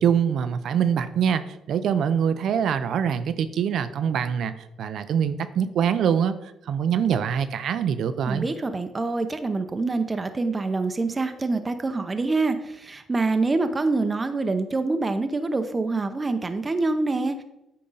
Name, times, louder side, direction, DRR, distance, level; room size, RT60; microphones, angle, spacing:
voice 1, 0.0-8.5, right 8 dB, 70° right, 12 dB, 0.6 m, -24 dB
voice 2, 8.3-17.4, right 3 dB, 25° right, 8 dB, 0.7 m, -26 dB
8.8 x 3.8 x 5.5 m, 0.90 s
cardioid pair, 90°, 0 cm